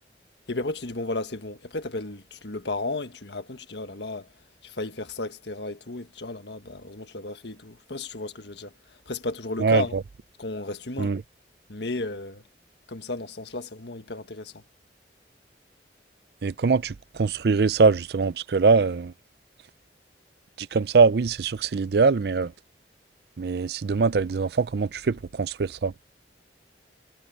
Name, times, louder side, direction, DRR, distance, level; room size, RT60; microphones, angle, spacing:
voice 1, 0.5-4.3 4.6-9.9 10.4-11.2 11.7-12.4 12.9-14.6, left 2 dB, 75° left, 1.5 m, -34 dB
voice 2, 16.4-19.1 20.6-22.5 23.4-25.9, right 4 dB, 60° right, 0.5 m, -22 dB
head